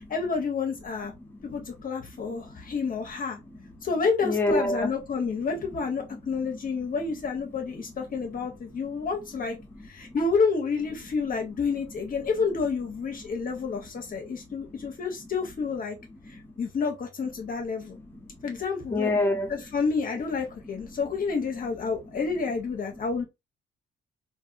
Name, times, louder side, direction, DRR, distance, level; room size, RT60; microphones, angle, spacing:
voice 1, 0.1-1.1 1.4-3.4 3.8-9.6 9.9-16.0 16.3-18.0 18.4-19.1 19.5-23.2, left 5 dB, 45° left, 0.7 m, -29 dB
voice 2, 1.2-1.7 2.1-2.7 3.0-3.1 3.4-3.8 4.2-5.5 6.1-6.9 7.6-8.9 9.4-10.2 13.3-14.9 15.2-15.3 16.2-16.7 17.7-18.5 18.9-19.6 20.6-21.0 22.1-22.2 22.9-23.0, left 2 dB, 10° left, 0.9 m, -33 dB
2.6 x 2.5 x 2.4 m
cardioid pair, 90°, 20 cm